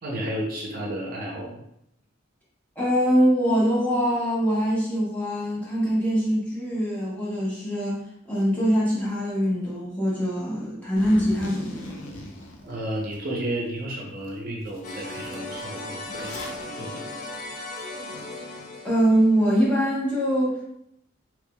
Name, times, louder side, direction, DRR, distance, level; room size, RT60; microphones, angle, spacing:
voice 1, 0.0-1.6 12.6-16.4 16.8-17.1, right 1 dB, 50° right, -2 dB, 0.6 m, -32 dB
voice 2, 2.8-8.0 8.3-12.0 18.8-20.7, equal, 10° left, -7 dB, 0.9 m, -23 dB
Zipper (clothing), 11.0-13.2 13.7-13.8 14.2-14.4 14.6-16.6, left 1 dB, 80° left, 0.6 m, -40 dB
sound 1, 14.8-19.7, left 2 dB, 40° left, 0.4 m, -37 dB
3.4 x 2.9 x 2.2 m, 0.77 s
head